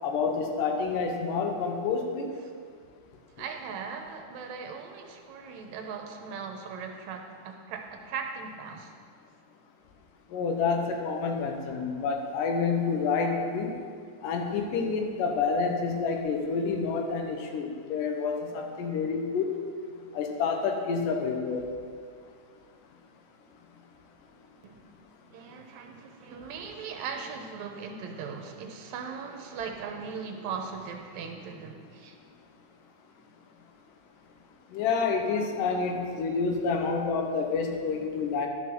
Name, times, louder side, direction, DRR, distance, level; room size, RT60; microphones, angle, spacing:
voice 1, 0.0-2.3 10.3-13.8 14.2-19.5 20.1-21.7 34.7-38.5, left 5 dB, 85° left, 3 dB, 2.5 m, -28 dB
voice 2, 3.4-8.9 24.6-24.8 25.3-32.2, right 5 dB, 70° right, 4 dB, 2.0 m, -39 dB
11.0 x 6.6 x 6.0 m, 2.1 s
omnidirectional pair, 3.7 m